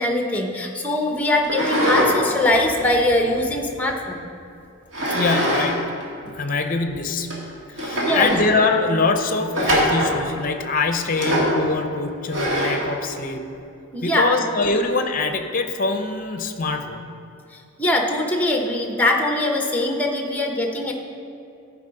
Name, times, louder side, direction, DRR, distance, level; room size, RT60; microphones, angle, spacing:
voice 1, 0.0-4.3 5.1-5.2 7.9-8.3 13.9-14.4 17.8-20.9, left 1 dB, 10° left, 2 dB, 0.8 m, -22 dB
sound 1, 1.4-2.1 2.5-3.9 4.9-5.7 6.0-6.1 6.8-6.9 7.3-7.4 7.8-8.5 9.5-10.2 11.1-11.6 12.3-12.9, equal, 60° right, 2.2 m, -22 dB
voice 2, 5.1-5.8 6.3-7.3 7.8-13.4 14.0-17.0, left 3 dB, 40° left, 7 dB, 0.6 m, -23 dB
13.5 x 4.8 x 5.2 m, 2.6 s
head